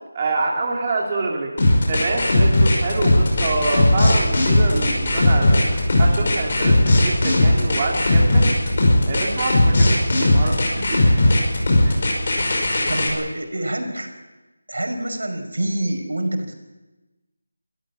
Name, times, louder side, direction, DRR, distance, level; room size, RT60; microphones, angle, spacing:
voice 1, 0.1-5.6 6.0-8.5 9.1-11.2 11.8-12.0, right 3 dB, 20° right, -1 dB, 2.4 m, -26 dB
sound 1, 1.6-13.1, left 1 dB, 35° left, 5.6 m, -17 dB
sound 2, 3.3-10.1, left 2 dB, 10° left, 2.2 m, -35 dB
voice 2, 12.9-14.1 14.7-16.5, right 1 dB, 85° right, 5 dB, 5.3 m, -26 dB
24.0 x 14.5 x 8.6 m, 1.1 s
figure-of-eight pair, 175°, 0 cm